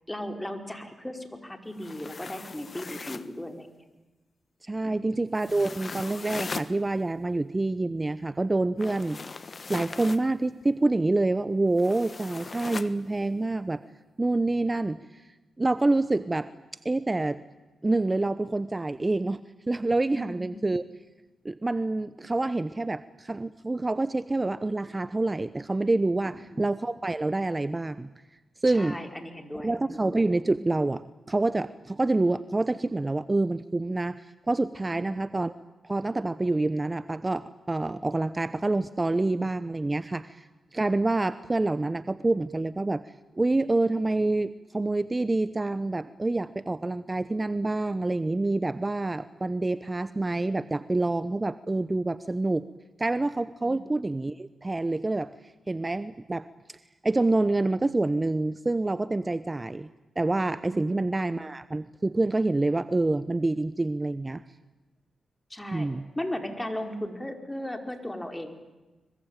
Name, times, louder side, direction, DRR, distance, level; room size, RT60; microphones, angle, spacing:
voice 1, 0.1-3.7 4.8-5.2 20.1-20.7 26.5-26.7 28.7-30.2 34.9-35.2 53.6-53.8 60.6-61.0 65.5-65.9 66.1-68.5, left 1 dB, 15° left, 5 dB, 4.9 m, -37 dB
sound 1, 1.7-3.4 5.4-6.7 8.8-10.3 11.8-12.9, left 4 dB, 50° left, 1.3 m, -39 dB
voice 2, 4.6-9.2 9.7-13.8 14.2-15.2 15.6-16.5 16.8-17.4 17.8-19.4 19.7-20.8 21.4-28.1 28.6-29.0 29.6-35.5 35.8-40.5 40.7-43.0 43.4-52.7 53.0-55.3 55.7-56.8 57.0-59.9 60.2-64.4 65.7-66.0, right 2 dB, 30° right, 15 dB, 0.9 m, -27 dB
26.0 x 23.5 x 9.1 m, 1.1 s
supercardioid pair, 45°, 0 cm